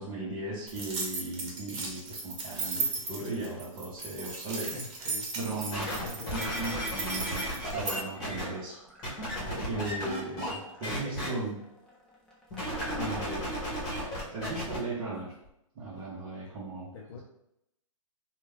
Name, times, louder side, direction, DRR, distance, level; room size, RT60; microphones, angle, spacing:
voice 1, 0.0-5.9 6.3-8.8 9.1-11.5 12.9-14.0 14.3-15.4 15.7-17.2, right 2 dB, 30° right, -9 dB, 1.0 m, -37 dB
sound 1, 0.7-8.0, right 3 dB, 55° right, 1.1 m, -36 dB
voice 2, 4.7-5.3 5.8-7.3 11.0-11.5 12.9-13.6 16.9-17.2, left 5 dB, 50° left, -3 dB, 0.6 m, -43 dB
sound 2, 5.7-8.4 9.0-10.6 10.8-11.3 12.5-14.8 15.4-15.5, equal, 25° left, 1.2 m, -34 dB
sound 3, 6.0-7.2 7.6-13.5, equal, 5° left, 0.5 m, -47 dB
3.0 x 2.4 x 3.4 m, 0.78 s
hypercardioid pair, 140°, 18 cm